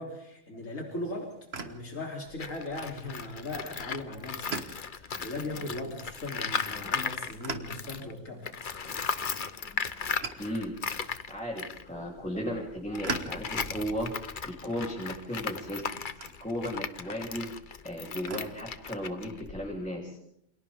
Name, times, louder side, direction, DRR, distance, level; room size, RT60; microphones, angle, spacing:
voice 1, 0.0-1.3 1.6-8.7, left 2 dB, 85° left, 0 dB, 3.8 m, -39 dB
sound 1, 0.9-18.4, right 4 dB, 55° right, 1.7 m, -45 dB
Tools, 2.3-8.1 8.4-19.9, left 6 dB, 45° left, 1.0 m, -37 dB
voice 2, 8.0-8.3 8.8-9.8 10.4-10.7 11.3-15.9 16.4-17.5 17.8-20.2, equal, 5° left, -3 dB, 3.5 m, -36 dB
29.0 x 27.0 x 3.7 m, 0.72 s
omnidirectional pair, 1.3 m